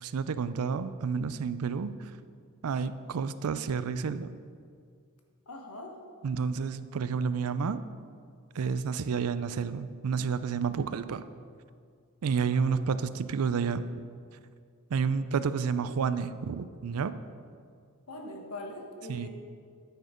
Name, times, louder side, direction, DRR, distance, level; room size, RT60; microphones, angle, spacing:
voice 1, 0.0-2.1 2.6-4.3 6.2-7.8 8.5-11.2 12.2-13.9 14.9-17.1 19.1-19.3, right 5 dB, 75° right, 13 dB, 0.4 m, -30 dB
voice 2, 5.5-6.0 12.4-12.7 18.1-19.3, left 1 dB, 80° left, 3 dB, 1.3 m, -42 dB
9.3 x 6.5 x 5.0 m, 2.2 s
head